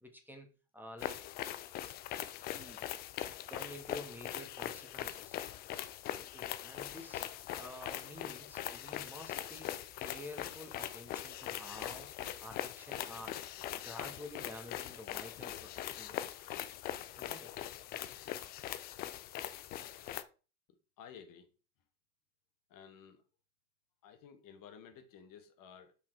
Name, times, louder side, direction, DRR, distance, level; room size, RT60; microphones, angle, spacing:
voice 1, 0.0-0.5 0.7-1.2 2.6-2.8 3.5-5.4 6.1-7.2 7.6-12.1 12.4-13.4 13.8-16.2 17.2-17.6, left 1 dB, 5° right, 1.4 m, -50 dB
sound 1, 1.0-20.2, left 12 dB, 25° left, 0.3 m, -42 dB
voice 2, 21.0-21.5 22.7-23.2 24.0-25.9, left 7 dB, 40° left, 1.4 m, -54 dB
5.7 x 5.0 x 4.4 m
hypercardioid pair, 90°, 50 cm